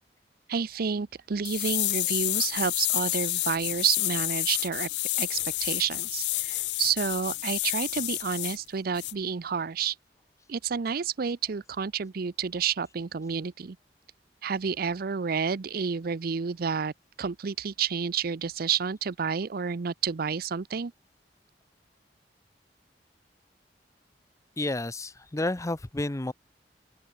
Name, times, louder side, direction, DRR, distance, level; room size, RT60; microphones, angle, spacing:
voice 1, 0.5-4.9 5.2-10.0 10.5-13.8 14.4-16.9 17.2-20.9, right 6 dB, 55° right, 0.6 m, -30 dB
sound 1, 1.4-8.6 9.0-9.1, left 18 dB, 75° left, 0.6 m, -29 dB
voice 2, 24.6-26.3, left 2 dB, 20° left, 0.7 m, -30 dB
open air
head